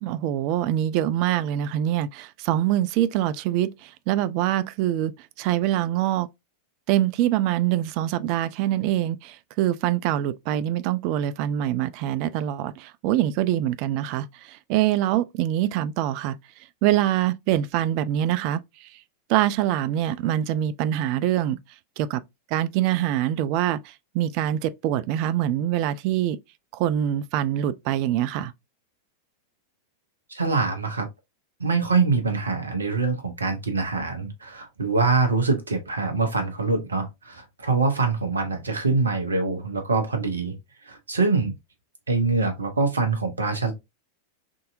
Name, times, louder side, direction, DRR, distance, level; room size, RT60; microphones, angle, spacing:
voice 1, 0.0-5.1 5.4-6.3 6.9-16.4 16.8-18.6 19.3-21.6 22.0-22.2 22.5-26.4 26.7-28.5, right 12 dB, 45° right, 0.3 m, -24 dB
voice 2, 30.3-31.0 31.6-40.6 40.9-41.5 42.1-43.7, right 4 dB, 75° right, 0.9 m, -24 dB
3.7 x 2.7 x 2.5 m
figure-of-eight pair, 90°, 0 cm